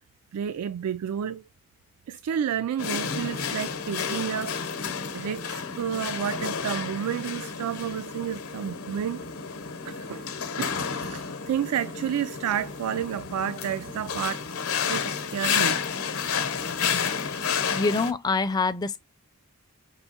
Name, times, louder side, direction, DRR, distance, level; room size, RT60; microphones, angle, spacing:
voice 1, 0.3-1.4 2.1-4.8 5.1-9.3 9.8-10.3 10.6-14.5 14.9-15.8, right 9 dB, 85° right, 0.3 m, -31 dB
sound 1, 2.8-18.1, left 6 dB, 75° left, 0.8 m, -31 dB
voice 2, 17.7-19.0, left 3 dB, 20° left, 0.3 m, -25 dB
5.5 x 3.2 x 2.7 m
head